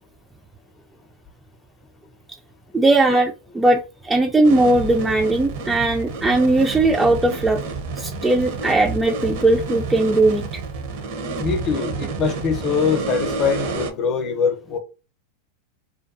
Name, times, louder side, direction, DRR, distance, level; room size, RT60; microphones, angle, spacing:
voice 1, 2.7-7.6 8.0-10.4, right 2 dB, 10° right, 0.3 m, -18 dB
sound 1, 4.4-13.9, right 4 dB, 65° right, 0.6 m, -29 dB
voice 2, 11.4-14.8, left 6 dB, 40° left, 0.6 m, -23 dB
2.6 x 2.3 x 2.5 m
hypercardioid pair, 110°, 0 cm